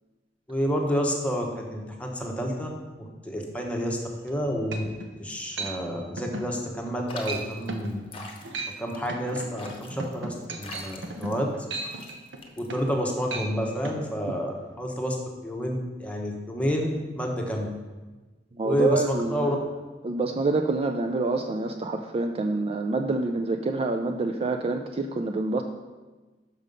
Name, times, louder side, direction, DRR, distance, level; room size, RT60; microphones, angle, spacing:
voice 1, 0.5-2.7 3.0-4.0 4.2-4.8 5.2-8.0 8.8-11.5 12.6-15.2 15.4-17.7 18.6-19.6, equal, 10° left, 0 dB, 1.0 m, -29 dB
sound 1, 4.3-4.4 4.7-5.1 5.6-5.8 6.2-6.5 6.8-7.0 7.3-7.4 7.7-7.9 8.4-8.8 9.1-13.0 13.3-13.5 13.9-14.0, right 3 dB, 85° right, 0.8 m, -35 dB
sound 2, 7.1-13.0, left 3 dB, 30° left, 0.9 m, -43 dB
voice 2, 18.6-19.5 20.0-25.6, right 2 dB, 35° right, 5 dB, 0.4 m, -27 dB
6.4 x 5.3 x 5.3 m, 1.2 s
head